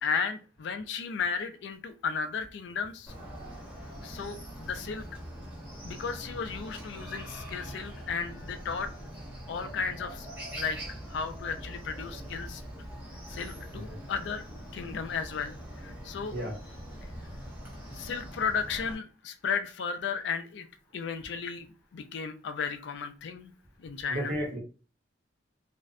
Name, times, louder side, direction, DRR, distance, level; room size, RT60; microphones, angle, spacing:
voice 1, 0.0-3.1 4.0-5.1 5.8-8.9 9.5-10.3 10.5-12.6 13.3-14.4 14.7-16.3 17.9-20.7 20.9-23.5 23.8-24.3, left 6 dB, 65° left, 9 dB, 0.3 m, -34 dB
Chicken rooster, 3.1-18.9, equal, 10° right, 0.8 m, -43 dB
voice 2, 24.1-24.6, equal, 50° right, 0 dB, 0.8 m, -33 dB
2.5 x 2.1 x 2.4 m, 0.34 s
head